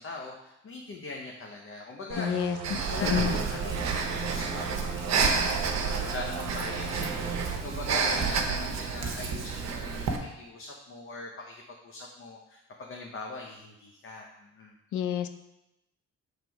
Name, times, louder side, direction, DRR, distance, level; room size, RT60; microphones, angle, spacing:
voice 1, 0.0-14.7, left 3 dB, 45° left, 0 dB, 0.8 m, -41 dB
sound 1, 2.1-7.6, right 5 dB, 80° right, 0.8 m, -38 dB
voice 2, 2.2-2.6 3.0-3.3 14.9-15.3, left 10 dB, 75° left, 9 dB, 0.6 m, -28 dB
Breathing, 2.6-10.2, right 5 dB, 60° right, 0.9 m, -30 dB
6.1 x 3.3 x 4.6 m, 0.90 s
cardioid pair, 90°, 30 cm